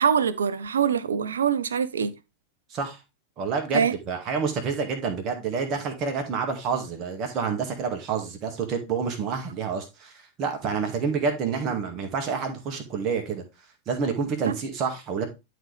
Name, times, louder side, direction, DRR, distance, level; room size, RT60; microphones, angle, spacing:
voice 1, 0.0-2.1 3.7-3.9 14.4-14.5, right 7 dB, 70° right, 0.6 m, -24 dB
voice 2, 3.4-10.1 10.4-13.4 13.9-15.3, right 5 dB, 35° right, 1.9 m, -28 dB
11.5 x 4.0 x 3.3 m
figure-of-eight pair, 90°, 0 cm